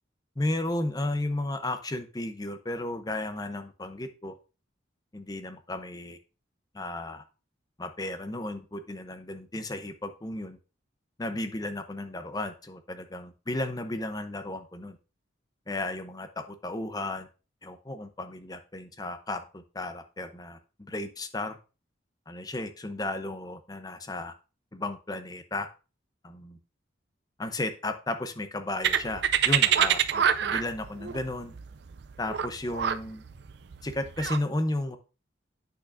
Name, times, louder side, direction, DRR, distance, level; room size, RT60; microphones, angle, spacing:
voice 1, 0.4-4.4 5.1-6.2 6.7-7.2 7.8-10.6 11.2-15.0 15.7-17.3 17.6-21.6 22.3-24.3 24.7-25.7 26.2-26.6 27.4-31.5 32.2-33.2 33.8-35.0, left 2 dB, 20° left, 9 dB, 0.6 m, -34 dB
sound 1, 28.8-34.4, right 9 dB, 60° right, 0.4 m, -26 dB
8.5 x 6.3 x 2.5 m, 0.32 s
head